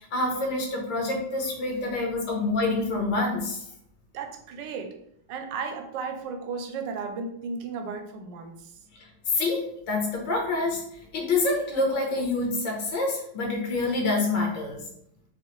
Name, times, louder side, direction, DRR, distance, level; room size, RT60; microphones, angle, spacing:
voice 1, 0.0-3.6 9.0-10.8 11.1-14.9, left 2 dB, 65° left, 0 dB, 1.7 m, -27 dB
voice 2, 4.1-5.0 5.3-8.8, right 5 dB, 70° right, 5 dB, 1.1 m, -35 dB
5.4 x 2.2 x 3.1 m, 0.70 s
omnidirectional pair, 2.4 m